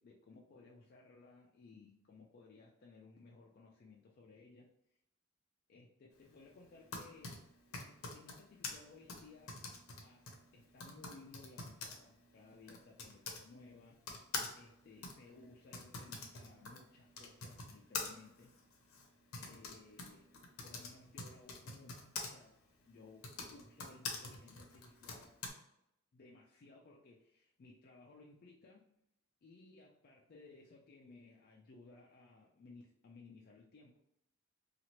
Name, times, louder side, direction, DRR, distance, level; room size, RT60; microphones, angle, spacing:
voice 1, 0.0-4.7 5.7-9.6 10.0-14.0 14.5-18.5 19.3-20.4 20.6-22.6 22.8-25.4 26.1-28.9 29.4-34.0, left 3 dB, 45° left, -2 dB, 0.4 m, -59 dB
Typing, 6.6-13.4 14.0-22.3 23.1-25.5, left 4 dB, 80° left, 0.6 m, -46 dB
2.9 x 2.4 x 2.8 m, 0.79 s
head